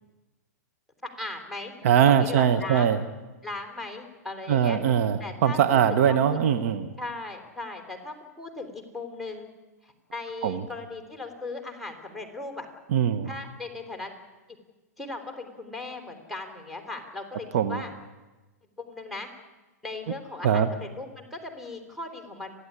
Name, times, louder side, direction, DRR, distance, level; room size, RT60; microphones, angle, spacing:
voice 1, 1.0-1.7 2.1-2.9 3.4-4.8 5.2-6.4 7.0-9.5 9.8-12.7 13.2-14.1 15.0-17.9 18.8-19.3 19.8-22.5, left 2 dB, ahead, 4 dB, 3.8 m, -38 dB
voice 2, 1.8-3.0 4.5-6.9 10.4-10.6 12.9-13.3 17.5-17.8 20.4-20.7, right 9 dB, 55° right, 9 dB, 1.3 m, -21 dB
29.5 x 11.5 x 9.9 m, 1.2 s
hypercardioid pair, 115°, 9 cm